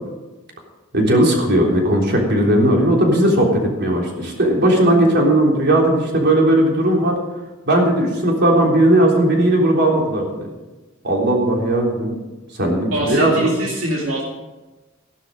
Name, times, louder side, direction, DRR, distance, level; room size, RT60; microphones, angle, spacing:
voice 1, 0.9-7.1 7.7-10.5 11.0-12.1 12.5-13.5, right 1 dB, 55° right, -1 dB, 3.6 m, -17 dB
voice 2, 12.9-14.2, right 1 dB, 75° right, -2 dB, 2.4 m, -24 dB
15.0 x 12.0 x 5.2 m, 1.1 s
head